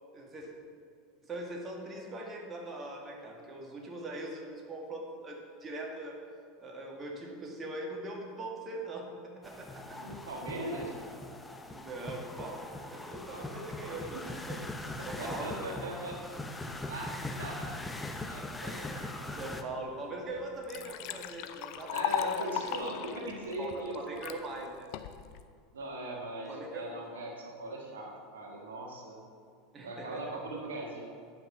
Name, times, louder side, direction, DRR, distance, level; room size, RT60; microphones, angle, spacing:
voice 1, 0.1-0.5 1.2-6.2 6.6-10.0 10.8-10.9 11.7-14.6 15.1-15.7 19.4-22.5 23.6-24.9 26.5-26.8 29.7-30.2, right 2 dB, 25° right, 0 dB, 1.9 m, -41 dB
sound 1, 9.4-19.6, left 2 dB, 10° left, 0.8 m, -41 dB
voice 2, 9.8-11.0 13.3-13.5 13.9-14.0 15.0-16.1 16.9-17.1 17.4-18.0 18.3-19.5 21.9-24.2 24.6-24.7 25.7-29.2 29.8-31.0, right 1 dB, 75° right, 0 dB, 1.4 m, -40 dB
Liquid, 19.9-20.0 20.4-24.4 24.9-25.4, left 11 dB, 55° left, 0.5 m, -36 dB
10.0 x 5.9 x 5.7 m, 2.2 s
figure-of-eight pair, 80°, 0 cm